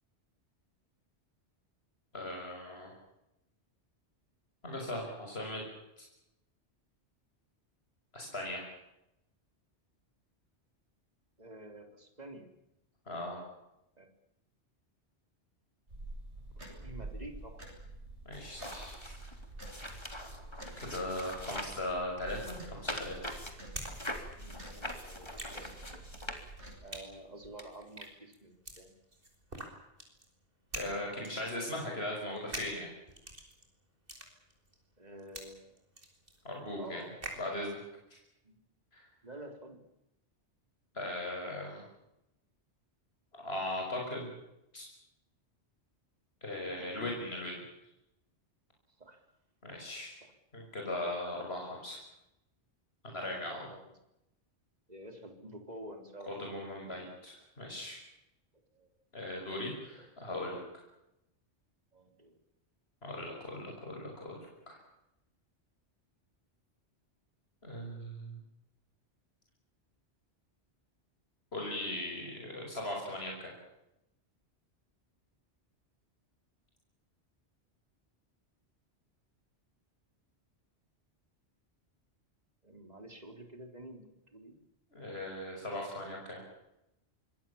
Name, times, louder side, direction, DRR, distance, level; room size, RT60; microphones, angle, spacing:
voice 1, 2.1-2.9 4.6-5.6 6.0-6.1 8.1-8.6 13.1-13.5 18.2-19.1 19.7-20.0 20.6-23.3 30.7-32.9 36.4-37.0 37.4-37.8 38.1-38.2 38.9-39.1 40.9-41.8 43.3-44.3 44.7-44.9 46.4-47.5 49.6-50.2 50.5-52.0 53.0-53.7 56.3-58.0 59.1-60.6 63.0-64.4 64.7-64.8 67.6-68.4 71.5-73.5 84.9-86.4, left 1 dB, 60° left, 0 dB, 6.5 m, -39 dB
voice 2, 11.4-12.5 14.0-14.1 16.7-17.6 24.4-25.3 25.5-26.0 26.8-28.9 35.0-35.8 36.8-37.1 38.4-38.6 39.2-39.8 46.6-47.1 49.0-49.2 50.2-50.3 53.6-53.9 54.9-56.3 58.5-58.9 59.3-59.4 59.9-60.0 61.9-62.4 82.6-84.0 84.3-84.5, right 1 dB, 35° right, 5 dB, 4.0 m, -49 dB
sound 1, 15.9-26.8, right 1 dB, 75° right, 7.9 m, -48 dB
sound 2, 18.3-21.9 22.2-26.9 27.6-27.7, left 1 dB, 25° left, 3.6 m, -43 dB
sound 3, 23.2-24.0 24.2-37.5, right 1 dB, 50° right, 5.7 m, -47 dB
25.5 x 21.5 x 7.2 m, 0.87 s
omnidirectional pair, 1.2 m